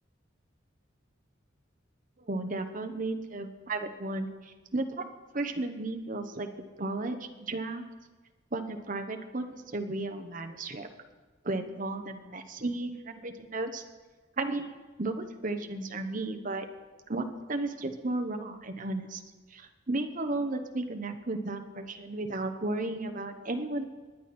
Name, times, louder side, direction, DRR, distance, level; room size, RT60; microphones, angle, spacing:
voice 1, 2.3-5.1 5.3-6.5 6.8-7.8 8.5-10.9 11.4-13.8 14.4-14.7 15.0-16.7 17.1-19.2 19.5-23.8, right 2 dB, 40° right, 7 dB, 1.0 m, -34 dB
20.5 x 9.2 x 4.4 m, 1.3 s
head